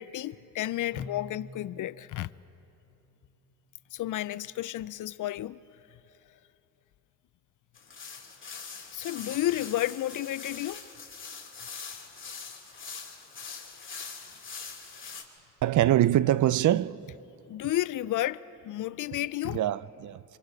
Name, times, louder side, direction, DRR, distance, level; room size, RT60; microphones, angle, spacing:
voice 1, 0.0-2.3 3.9-5.6 8.9-10.8 17.5-19.6, left 14 dB, 60° left, 0.5 m, -32 dB
Keyboard (musical), 0.9-4.6, equal, 30° right, 6.3 m, -50 dB
sound 1, 7.7-15.2, left 5 dB, 35° left, 2.7 m, -43 dB
voice 2, 15.6-17.0 19.4-20.2, right 13 dB, 60° right, 0.5 m, -24 dB
25.5 x 25.5 x 4.7 m
cardioid pair, 85°, 35 cm